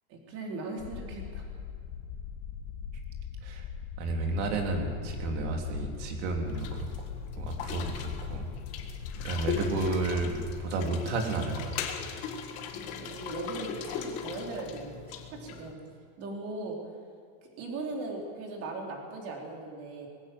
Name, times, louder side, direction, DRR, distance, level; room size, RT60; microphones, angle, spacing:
voice 1, 0.1-1.5 12.7-15.0 15.3-15.8 16.2-16.8 17.6-20.1, right 2 dB, 35° right, 0 dB, 4.2 m, -38 dB
sound 1, 0.8-10.5, left 7 dB, 65° left, 2.2 m, -40 dB
voice 2, 4.0-6.9 7.4-8.4 9.2-11.7, right 2 dB, 55° right, 2 dB, 3.6 m, -31 dB
sound 2, 6.4-15.7, left 7 dB, 35° left, 1.8 m, -39 dB
20.5 x 16.0 x 7.9 m, 2.4 s
supercardioid pair, 170°, 42 cm